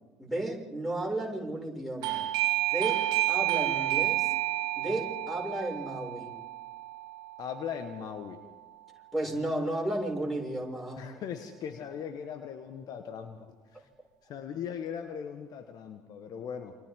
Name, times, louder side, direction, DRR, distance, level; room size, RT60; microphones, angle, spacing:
voice 1, 0.2-2.3 2.7-4.3 4.8-6.4 9.1-11.2, right 1 dB, ahead, 0 dB, 6.6 m, -33 dB
Doorbell, 2.0-8.5, right 18 dB, 60° right, 1.7 m, -31 dB
voice 2, 7.4-8.4 11.0-13.6 14.3-16.7, left 7 dB, 50° left, 8 dB, 1.4 m, -39 dB
28.5 x 26.5 x 3.8 m, 1.3 s
figure-of-eight pair, 60°, 8 cm